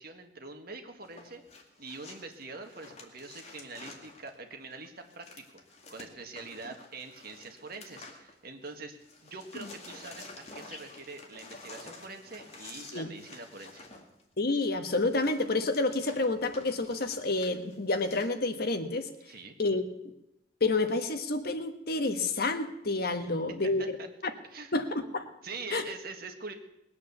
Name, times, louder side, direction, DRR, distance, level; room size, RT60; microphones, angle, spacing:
voice 1, 0.0-1.4 1.8-5.4 5.9-9.0 9.2-13.9 19.3-19.8 23.2-23.3 23.8-24.1 24.5-24.7 25.4-26.5, right 3 dB, 60° right, 5 dB, 1.8 m, -44 dB
sound 1, 1.0-8.7 9.0-18.3, left 3 dB, 35° left, 2.2 m, -50 dB
voice 2, 14.4-19.1 19.6-19.8 20.6-24.0 24.7-25.3 25.7-25.8, left 2 dB, 60° left, 7 dB, 1.3 m, -29 dB
20.0 x 8.7 x 7.0 m, 0.85 s
head